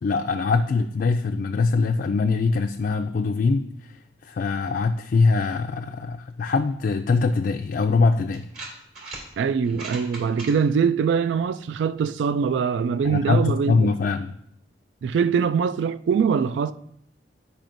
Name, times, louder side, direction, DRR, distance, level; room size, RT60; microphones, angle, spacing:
voice 1, 0.0-3.6 4.2-8.5 13.0-14.4, left 4 dB, 55° left, 0.4 m, -22 dB
sound 1, 7.5-7.6 8.3-9.2 9.6-10.5, right 3 dB, 55° right, 2.4 m, -38 dB
voice 2, 9.4-13.9 15.0-16.7, right 6 dB, 85° right, 0.3 m, -23 dB
10.5 x 5.0 x 2.6 m
head